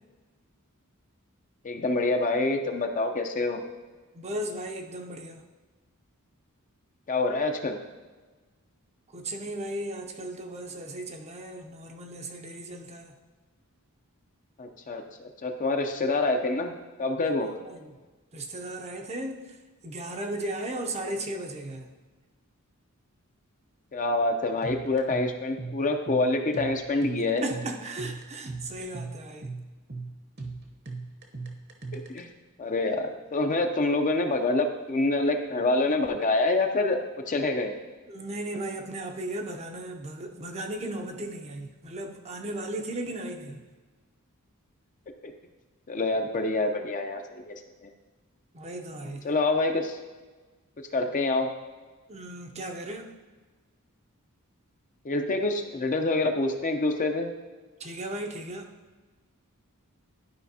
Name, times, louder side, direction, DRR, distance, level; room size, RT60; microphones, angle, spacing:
voice 1, 1.6-3.6 7.1-7.8 14.6-16.7 17.0-17.5 23.9-27.4 31.9-32.3 32.6-37.7 45.2-45.3 45.9-47.6 47.8-47.9 49.2-50.0 50.9-51.5 55.0-57.3, left 2 dB, 35° left, 5 dB, 0.6 m, -26 dB
voice 2, 4.1-5.4 9.1-13.1 17.5-17.9 18.3-19.4 19.8-21.9 27.4-29.5 38.1-43.6 48.5-49.3 52.1-53.1 57.8-58.7, right 1 dB, 30° right, 4 dB, 0.6 m, -36 dB
sound 1, 24.6-32.2, right 3 dB, 50° right, 0.9 m, -39 dB
11.5 x 5.0 x 2.8 m, 1.3 s
head